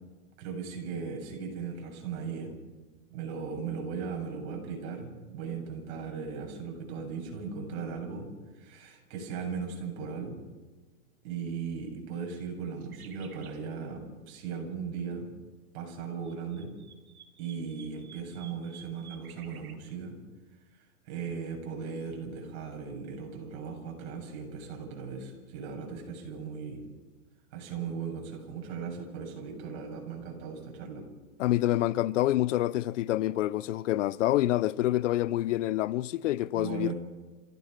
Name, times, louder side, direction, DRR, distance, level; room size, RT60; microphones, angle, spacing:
voice 1, 0.4-2.5 3.1-10.4 11.2-15.3 15.7-16.7 17.4-20.2 20.7-26.8 27.5-31.1 36.5-36.9, right 5 dB, 50° right, 7.8 m, -38 dB
sound 1, 12.8-13.6 16.0-19.8, right 8 dB, 85° right, 3.8 m, -53 dB
voice 2, 31.4-36.9, left 15 dB, 60° left, 0.7 m, -27 dB
27.5 x 16.5 x 6.0 m
hypercardioid pair, 145°, 43 cm